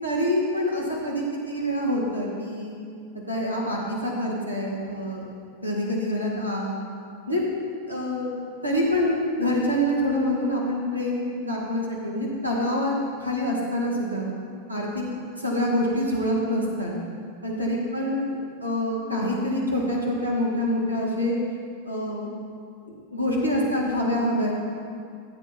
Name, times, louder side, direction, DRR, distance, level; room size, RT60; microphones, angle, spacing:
voice 1, 0.0-2.8 3.1-5.3 5.6-6.8 7.3-7.4 7.9-8.3 8.6-12.9 13.2-14.3 14.7-15.0 15.4-16.9 17.4-21.4 21.8-22.3 23.1-24.5, left 1 dB, 85° right, -3 dB, 2.1 m, -26 dB
14.5 x 8.0 x 4.6 m, 2.3 s
figure-of-eight pair, 90°, 0 cm